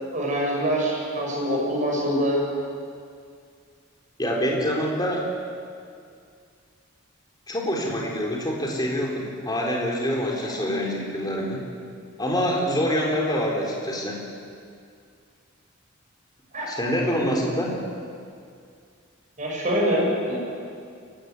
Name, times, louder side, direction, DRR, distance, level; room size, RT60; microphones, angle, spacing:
voice 1, 0.1-2.4 10.4-10.8 16.5-16.7 19.4-20.4, equal, 35° right, -3 dB, 7.3 m, -25 dB
voice 2, 4.2-5.4 7.5-11.6 12.2-14.2 16.7-17.8, equal, 20° left, -1 dB, 3.9 m, -25 dB
23.0 x 16.0 x 9.7 m, 2.3 s
head